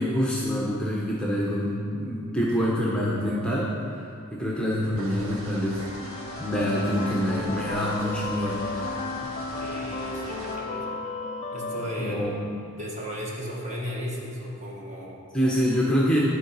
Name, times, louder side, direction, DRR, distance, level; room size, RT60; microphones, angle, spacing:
voice 1, 0.0-3.7 4.0-4.1 4.3-5.8 6.4-8.6 12.0-12.3 15.3-16.2, equal, 5° left, -5 dB, 0.8 m, -26 dB
sound 1, 5.0-10.5, right 1 dB, 85° right, 1.5 m, -40 dB
sound 2, 5.8-12.8, left 3 dB, 30° left, 0.4 m, -34 dB
voice 2, 9.5-10.9 11.5-12.3 12.8-15.2, equal, 35° right, -4 dB, 1.4 m, -35 dB
10.5 x 3.9 x 5.4 m, 2.4 s
head